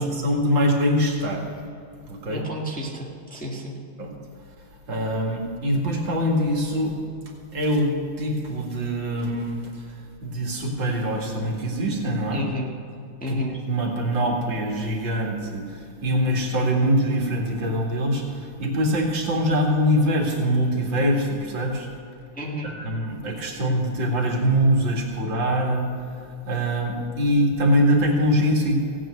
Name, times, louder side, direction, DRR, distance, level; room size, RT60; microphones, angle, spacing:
voice 1, 0.0-1.4 2.1-2.4 4.0-4.1 4.9-7.0 7.5-9.9 10.2-12.4 13.3-21.9 22.7-25.9 26.2-28.8, equal, 65° right, 0 dB, 2.6 m, -23 dB
voice 2, 2.3-3.8 12.3-12.7 13.2-13.6 22.3-22.8, equal, 5° left, -3 dB, 1.6 m, -31 dB
17.0 x 8.8 x 6.3 m, 2.5 s
omnidirectional pair, 2.2 m